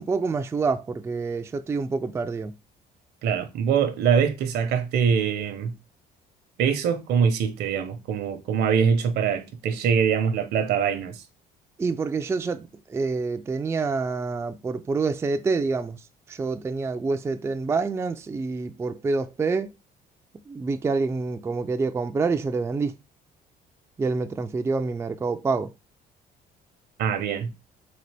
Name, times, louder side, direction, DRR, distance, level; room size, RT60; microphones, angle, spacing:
voice 1, 0.0-2.5 11.8-19.7 20.5-22.9 24.0-25.7, right 4 dB, 15° right, 0.3 m, -27 dB
voice 2, 3.2-5.8 6.6-11.2 27.0-27.5, right 7 dB, 75° right, 0.8 m, -23 dB
4.0 x 2.9 x 3.3 m
cardioid pair, 110°, 17 cm